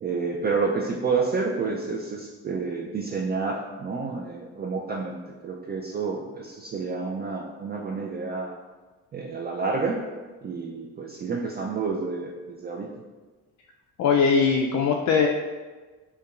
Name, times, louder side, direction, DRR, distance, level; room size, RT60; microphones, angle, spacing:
voice 1, 0.0-5.2 5.4-8.6 9.1-10.0 10.4-12.9, right 4 dB, 30° right, -1 dB, 0.4 m, -29 dB
voice 2, 14.0-15.3, left 5 dB, 50° left, 1 dB, 0.4 m, -20 dB
5.1 x 2.3 x 2.4 m, 1.3 s
supercardioid pair, 65°, 36 cm